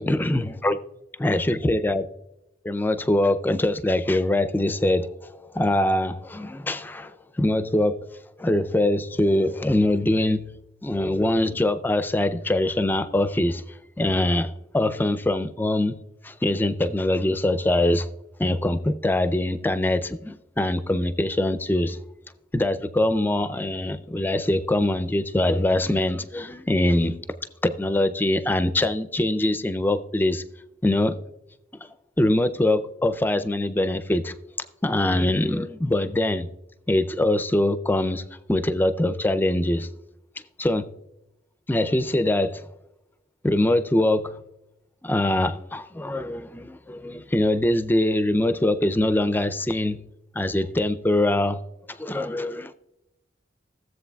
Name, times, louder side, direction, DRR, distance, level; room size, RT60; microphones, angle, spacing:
voice 1, 0.0-0.8 1.2-2.0 2.6-8.0 8.4-13.6 14.0-16.0 16.2-18.1 18.4-22.0 22.5-27.1 27.6-30.4 30.8-31.2 32.2-34.3 34.8-36.5 36.9-38.2 38.5-39.9 40.6-40.9 41.7-42.6 43.4-44.4 45.0-50.0 50.3-51.6 51.9-52.7, left 1 dB, 10° left, 0.4 m, -23 dB
16.0 x 7.7 x 2.3 m
head